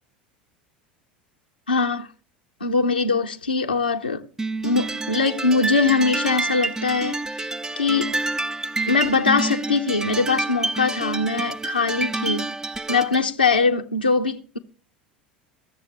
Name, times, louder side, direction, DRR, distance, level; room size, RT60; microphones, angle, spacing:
voice 1, 1.7-2.1 2.6-4.2 4.6-7.5 7.8-8.1 8.9-12.6 12.9-14.6, left 4 dB, 90° left, 0.9 m, -22 dB
sound 1, 4.4-13.3, right 2 dB, 10° right, 0.5 m, -28 dB
16.0 x 7.2 x 7.2 m
figure-of-eight pair, 75°, 5 cm